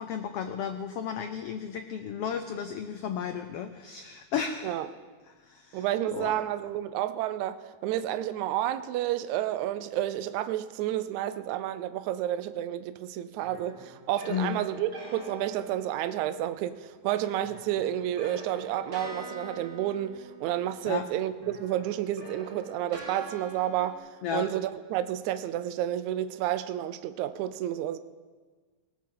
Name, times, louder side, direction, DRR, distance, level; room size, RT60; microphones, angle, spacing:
voice 1, 0.0-4.8 5.3-5.8 6.1-6.4 14.3-14.6 20.8-21.1 24.2-24.5, left 7 dB, 90° left, 1.3 m, -34 dB
voice 2, 5.7-28.0, right 12 dB, 75° right, 1.9 m, -30 dB
sound 1, 13.4-16.5 17.4-21.1 21.4-23.9, right 2 dB, 40° right, 4.9 m, -45 dB
19.0 x 18.5 x 3.8 m
omnidirectional pair, 3.5 m